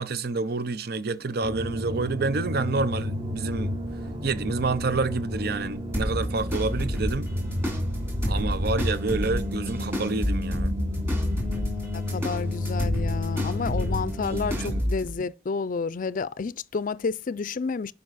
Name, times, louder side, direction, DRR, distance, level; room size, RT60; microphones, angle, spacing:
voice 1, 0.0-3.7 4.2-7.3 8.3-10.7 14.3-14.7, right 3 dB, 60° right, 0.7 m, -28 dB
sound 1, 1.4-14.8, left 1 dB, 30° right, 1.4 m, -31 dB
sound 2, 5.9-15.1, equal, 15° right, 3.4 m, -31 dB
voice 2, 11.9-17.9, left 4 dB, 50° left, 0.4 m, -30 dB
11.0 x 5.4 x 4.1 m
head